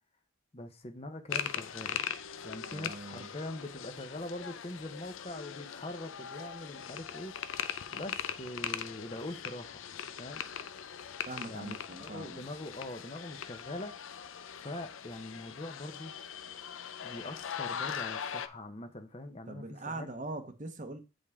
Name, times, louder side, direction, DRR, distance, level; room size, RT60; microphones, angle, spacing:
voice 1, 0.5-2.0 2.4-7.7 7.9-9.8 10.2-10.4 11.4-13.9 14.5-16.1 17.0-20.1, left 1 dB, 30° left, 0.8 m, -43 dB
sound 1, 1.3-18.5, left 8 dB, 75° left, 0.6 m, -40 dB
voice 2, 2.7-3.3 11.3-12.5 19.5-21.0, right 2 dB, 35° right, 1.0 m, -42 dB
8.3 x 5.3 x 3.6 m
head